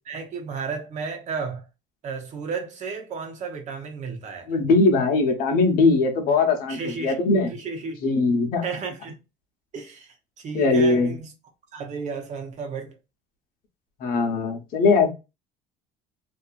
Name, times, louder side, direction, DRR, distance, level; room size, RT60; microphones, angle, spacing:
voice 1, 0.0-1.6 2.0-4.6 6.7-8.0 8.6-9.2 9.7-11.3 11.7-13.0, right 5 dB, 50° right, 0.9 m, -33 dB
voice 2, 4.5-7.5 8.0-8.6 10.5-11.2 14.0-15.1, left 3 dB, 65° left, 0.9 m, -20 dB
2.7 x 2.6 x 2.3 m
cardioid pair, 120°, 16 cm